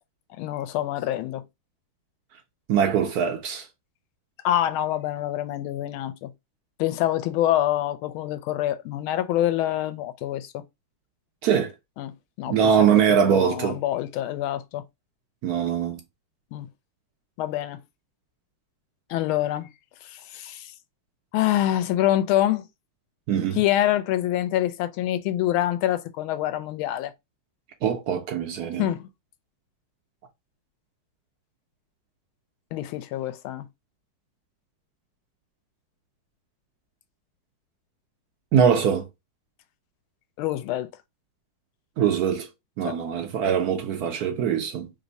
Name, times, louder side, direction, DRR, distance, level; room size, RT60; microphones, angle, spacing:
voice 1, 0.4-1.4 4.4-6.3 6.8-10.6 12.0-14.8 16.5-16.7 17.4-17.8 19.1-19.7 20.0-20.7 21.3-22.6 23.6-27.1 28.8-29.1 32.7-33.7 40.4-40.9 42.8-43.0, left 13 dB, 85° left, 1.4 m, -26 dB
voice 2, 2.7-3.7 11.4-11.7 12.5-13.8 15.4-16.0 23.3-23.6 27.8-28.9 38.5-39.1 42.0-42.5 42.8-44.9, right 8 dB, 70° right, 0.9 m, -22 dB
3.4 x 2.6 x 3.9 m
omnidirectional pair, 2.2 m